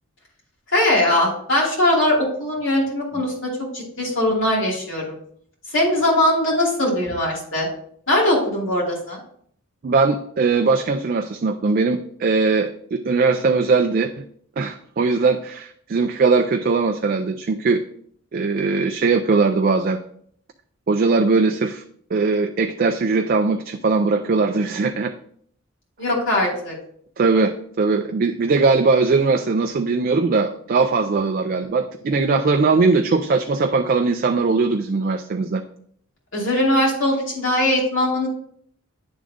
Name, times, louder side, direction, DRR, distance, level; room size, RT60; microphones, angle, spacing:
voice 1, 0.7-3.5 3.7-5.1 5.7-7.7 8.1-9.2 26.0-26.7 36.3-38.3, left 1 dB, 65° left, -3 dB, 2.7 m, -20 dB
voice 2, 9.8-14.1 14.6-17.8 18.3-20.0 20.9-21.8 22.1-25.1 27.2-35.6, right 4 dB, 45° right, 6 dB, 0.4 m, -20 dB
9.5 x 3.7 x 3.6 m, 0.63 s
head